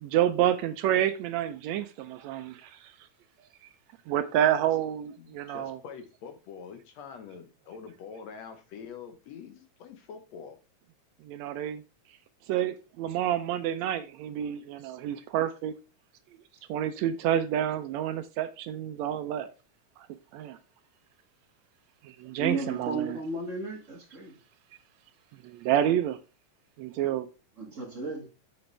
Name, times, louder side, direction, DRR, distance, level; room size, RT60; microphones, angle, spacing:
voice 1, 0.0-2.9 4.1-5.8 11.3-11.8 12.5-15.7 16.7-19.5 20.3-20.6 22.0-23.2 25.4-26.2 26.8-27.3 27.8-27.9, right 11 dB, 80° right, 1.7 m, -28 dB
voice 2, 5.2-10.6, left 6 dB, 70° left, 2.1 m, -45 dB
voice 3, 22.4-24.3 27.6-28.3, right 3 dB, 30° right, 1.6 m, -34 dB
6.8 x 6.4 x 3.2 m
omnidirectional pair, 3.3 m